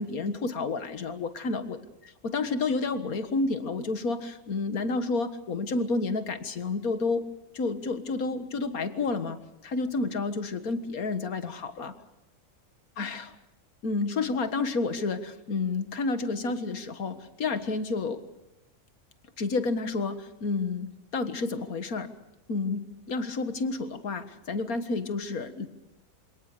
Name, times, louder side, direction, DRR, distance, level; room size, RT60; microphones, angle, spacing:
voice 1, 0.0-1.8 2.2-7.3 7.5-9.4 9.6-11.9 13.0-13.3 13.8-18.2 19.4-22.1 22.5-25.7, left 3 dB, 90° left, 10 dB, 2.0 m, -30 dB
27.5 x 18.5 x 6.7 m, 0.96 s
omnidirectional pair, 1.5 m